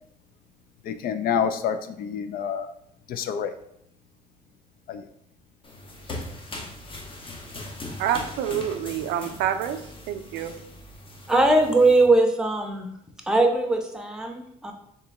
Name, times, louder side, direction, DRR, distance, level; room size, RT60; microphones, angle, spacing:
voice 1, 0.8-2.7 3.1-3.5 4.9-5.0, left 7 dB, 60° left, 10 dB, 0.4 m, -27 dB
sound 1, 5.6-12.1, left 2 dB, 30° left, 0.7 m, -40 dB
voice 2, 8.0-9.8 10.1-10.5, right 10 dB, 85° right, 8 dB, 0.4 m, -27 dB
voice 3, 11.3-12.9 13.3-14.7, right 2 dB, 5° right, 2 dB, 0.7 m, -20 dB
3.7 x 3.0 x 3.4 m, 0.73 s
cardioid pair, 110°, 17 cm